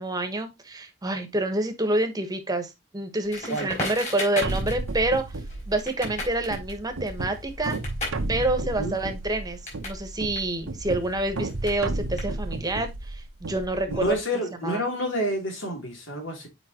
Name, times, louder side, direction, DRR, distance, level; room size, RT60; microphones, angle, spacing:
voice 1, 0.0-5.2 5.7-7.8 8.3-14.1 14.6-14.8, right 2 dB, 20° right, 1.2 m, -27 dB
Crackle, 3.3-10.0 10.3-12.7, left 2 dB, 35° left, 4.6 m, -36 dB
sound 1, 4.4-14.1, right 2 dB, 90° right, 0.9 m, -33 dB
voice 2, 8.6-9.0 13.9-16.5, equal, 65° left, 3.1 m, -29 dB
7.9 x 5.0 x 2.9 m
head